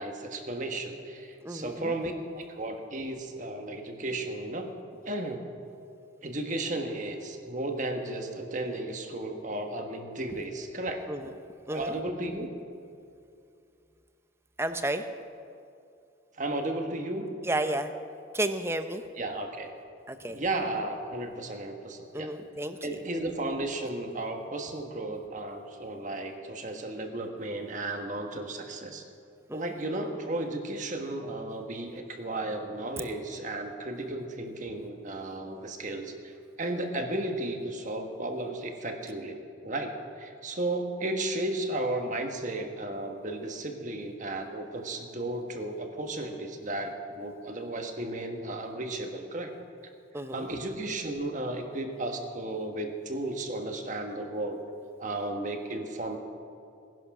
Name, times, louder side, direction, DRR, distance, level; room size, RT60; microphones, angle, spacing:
voice 1, 0.0-5.5 6.2-11.0 11.7-12.5 16.4-17.3 19.2-19.7 20.3-22.3 22.8-29.0 29.5-49.5 50.3-54.6 55.0-56.2, right 2 dB, 40° right, 4 dB, 1.3 m, -34 dB
voice 2, 1.4-1.9 11.1-11.3 11.7-11.9 14.6-15.0 17.4-17.9 18.3-19.0 20.1-20.4 22.1-23.0 29.5-29.7 50.1-50.5, right 1 dB, 15° right, 9 dB, 0.6 m, -32 dB
18.0 x 11.0 x 6.0 m, 2.5 s
head